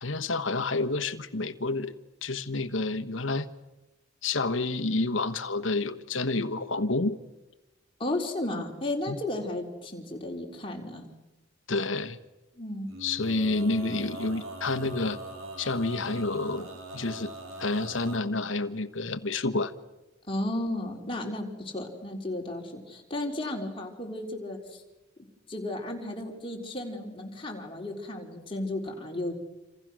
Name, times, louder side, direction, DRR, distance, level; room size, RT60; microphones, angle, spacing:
voice 1, 0.0-3.5 4.2-7.2 9.1-9.2 11.7-12.2 13.0-15.2 15.6-17.3 17.6-19.7, left 3 dB, 70° left, 11 dB, 1.3 m, -29 dB
voice 2, 8.0-11.1 12.6-12.9 20.3-24.8 25.5-29.4, left 1 dB, 25° left, 0 dB, 4.0 m, -34 dB
Male singing, 12.9-18.2, right 2 dB, 85° right, 4.0 m, -42 dB
28.0 x 27.5 x 6.4 m, 1.1 s
head